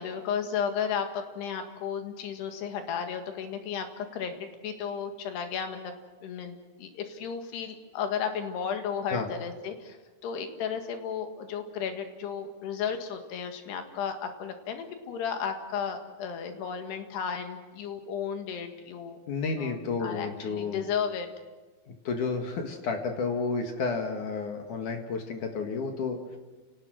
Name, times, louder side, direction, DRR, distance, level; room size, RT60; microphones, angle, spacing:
voice 1, 0.0-6.0 6.2-10.0 10.2-19.2 19.6-21.3, left 7 dB, 90° left, 6 dB, 4.0 m, -34 dB
voice 2, 19.3-20.8 21.9-26.2, left 4 dB, 60° left, 4 dB, 2.9 m, -31 dB
30.0 x 18.5 x 6.3 m, 1.3 s
omnidirectional pair, 4.6 m